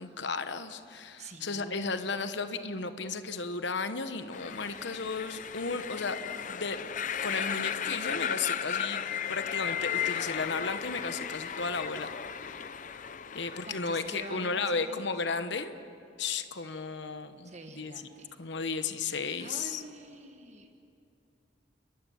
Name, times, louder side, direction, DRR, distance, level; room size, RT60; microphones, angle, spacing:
voice 1, 0.0-6.2 6.5-6.8 7.2-9.0 9.3-12.1 12.4-12.6 13.3-15.7 16.2-18.1 18.4-19.8, left 4 dB, 65° left, 10 dB, 1.1 m, -34 dB
voice 2, 1.2-1.9 13.7-15.1 17.4-18.4 19.4-20.8, right 2 dB, 35° right, 5 dB, 1.4 m, -46 dB
sound 1, 4.3-14.6, left 8 dB, 40° left, 0.6 m, -35 dB
29.5 x 21.5 x 7.2 m, 2.6 s
head